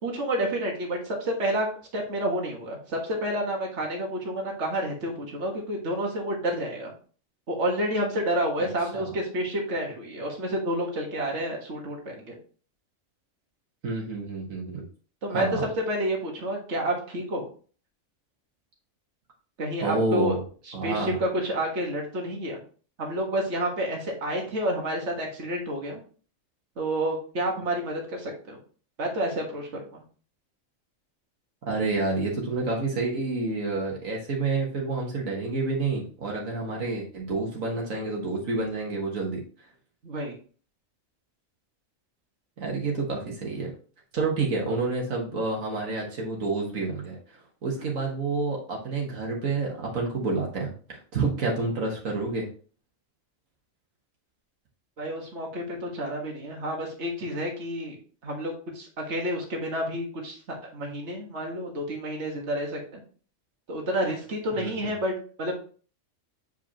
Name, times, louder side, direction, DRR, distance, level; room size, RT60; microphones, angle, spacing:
voice 1, 0.0-1.7 1.9-6.9 7.5-12.4 15.2-15.6 15.9-17.4 19.6-20.4 20.7-22.6 23.0-26.0 26.8-28.6 29.0-30.0 40.0-40.4 47.8-47.9 55.0-58.0 58.2-60.4 60.7-63.0 63.7-65.1 65.4-65.5, equal, 60° right, 0 dB, 1.9 m, -29 dB
voice 2, 13.8-14.8 15.3-15.7 19.8-20.4 20.7-21.2 31.7-39.4 42.6-43.7 44.1-52.5 64.5-64.9, right 3 dB, 80° right, -1 dB, 1.9 m, -29 dB
7.9 x 5.1 x 2.9 m, 0.41 s
omnidirectional pair, 1.4 m